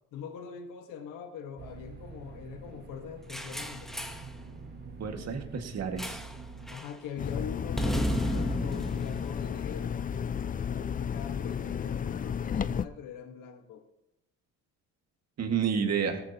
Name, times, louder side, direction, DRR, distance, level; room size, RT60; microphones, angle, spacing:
voice 1, 0.1-4.1 6.7-10.1 10.7-13.8, left 7 dB, 85° left, 4 dB, 1.6 m, -42 dB
sound 1, 1.6-6.8, right 4 dB, 30° right, 1.6 m, -46 dB
sound 2, 3.3-4.3 6.0-6.4 6.7-7.0 7.8-10.1, equal, ahead, 1.2 m, -33 dB
voice 2, 5.0-6.2 15.4-16.2, right 6 dB, 55° right, 4 dB, 2.1 m, -30 dB
sound 3, 7.2-12.9, left 7 dB, 25° left, 0.5 m, -33 dB
18.5 x 13.5 x 3.0 m, 0.86 s
cardioid pair, 90°, 31 cm